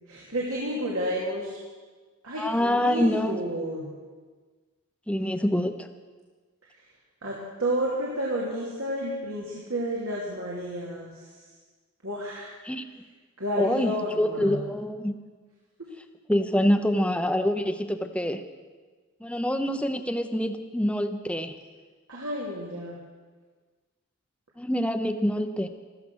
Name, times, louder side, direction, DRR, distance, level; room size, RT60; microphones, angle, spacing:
voice 1, 0.1-1.6 2.2-3.9 7.2-11.3 12.0-12.5 13.4-14.6 15.8-15.9 22.1-23.0, equal, 85° right, -4 dB, 2.9 m, -31 dB
voice 2, 2.4-3.4 5.1-5.9 12.6-12.8 13.6-15.2 16.3-18.4 19.2-21.6 24.6-25.7, equal, 5° left, 8 dB, 0.7 m, -26 dB
14.5 x 14.0 x 6.3 m, 1.4 s
head